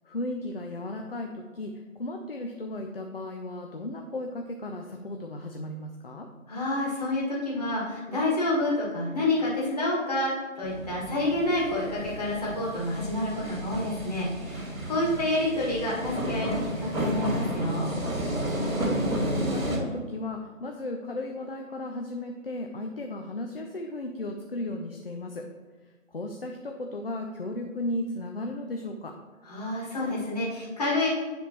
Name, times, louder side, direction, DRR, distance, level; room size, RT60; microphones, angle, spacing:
voice 1, 0.0-6.3 14.9-15.2 18.5-25.5 25.8-29.1, left 1 dB, 45° left, 3 dB, 0.5 m, -35 dB
voice 2, 6.5-17.9 29.5-31.1, left 1 dB, 30° left, -6 dB, 1.8 m, -28 dB
sound 1, 10.6-19.8, right 1 dB, 85° right, 1.9 m, -32 dB
10.0 x 3.5 x 2.9 m, 1.4 s
figure-of-eight pair, 165°, 40 cm